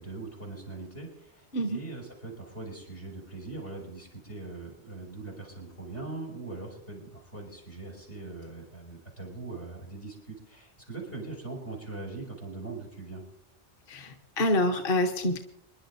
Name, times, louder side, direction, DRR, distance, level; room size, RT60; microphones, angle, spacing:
voice 1, 0.0-13.2, right 3 dB, 90° left, 0 dB, 6.0 m, -41 dB
voice 2, 13.9-15.4, left 1 dB, 55° left, 6 dB, 1.1 m, -27 dB
27.5 x 11.0 x 2.6 m, 0.71 s
omnidirectional pair, 1.2 m